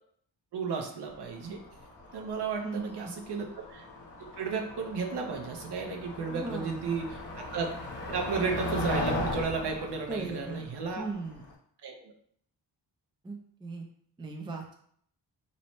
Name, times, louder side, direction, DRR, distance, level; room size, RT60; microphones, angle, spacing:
voice 1, 0.5-1.6 2.1-3.9 4.4-7.7 8.1-11.1 11.8-12.1, right 5 dB, 65° right, 2 dB, 0.6 m, -33 dB
Motor vehicle (road), 1.1-11.5, left 2 dB, 45° left, 0.7 m, -38 dB
voice 2, 2.6-3.2 6.3-7.0 10.1-10.6 11.0-11.4 13.2-13.8 14.2-14.7, right 3 dB, 10° right, 1 dB, 0.3 m, -38 dB
2.7 x 2.0 x 2.9 m, 0.64 s
cardioid pair, 80°, 44 cm